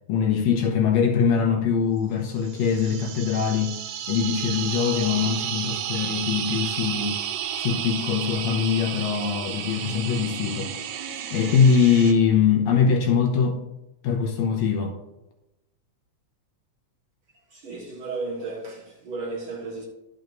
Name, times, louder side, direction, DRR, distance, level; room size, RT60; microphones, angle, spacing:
voice 1, 0.1-3.8 4.1-7.2 7.6-10.7 11.3-13.6 14.0-14.9, left 6 dB, 75° left, 2.0 m, -22 dB
sound 1, 2.4-12.1, right 9 dB, 75° right, 1.5 m, -32 dB
voice 2, 17.5-19.9, right 3 dB, 50° right, 2.1 m, -34 dB
11.5 x 6.3 x 2.6 m
omnidirectional pair, 3.4 m